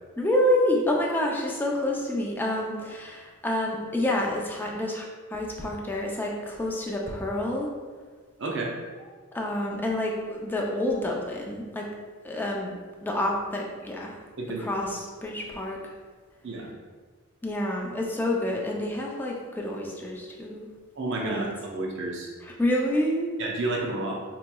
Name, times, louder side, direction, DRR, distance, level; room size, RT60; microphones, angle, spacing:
voice 1, 0.2-7.7 9.3-11.9 12.2-14.2 14.6-15.9 17.4-20.7 21.2-21.5 22.4-23.3, left 1 dB, 10° left, -1 dB, 0.4 m, -28 dB
voice 2, 8.4-8.7 14.4-14.7 16.4-16.7 21.0-22.3 23.4-24.1, right 2 dB, 60° right, -1 dB, 0.7 m, -30 dB
4.6 x 2.9 x 2.2 m, 1.5 s
head